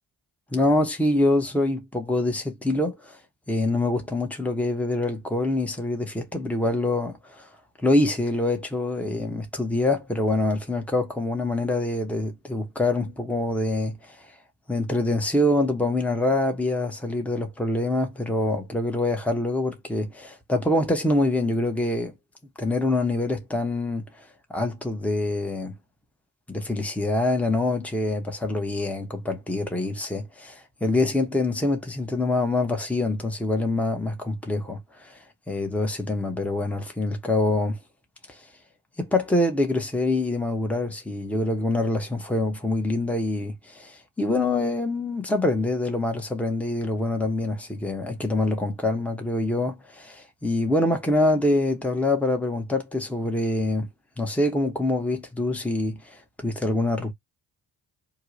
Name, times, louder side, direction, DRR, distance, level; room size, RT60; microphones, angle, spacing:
voice 1, 0.5-3.2 3.5-7.5 7.8-14.3 14.7-22.1 22.6-24.2 24.5-25.7 26.5-37.8 38.3-38.4 39.0-53.9 54.2-57.1, left 2 dB, 5° left, 1.0 m, -25 dB
2.8 x 2.3 x 3.9 m
hypercardioid pair, 40°, 49 cm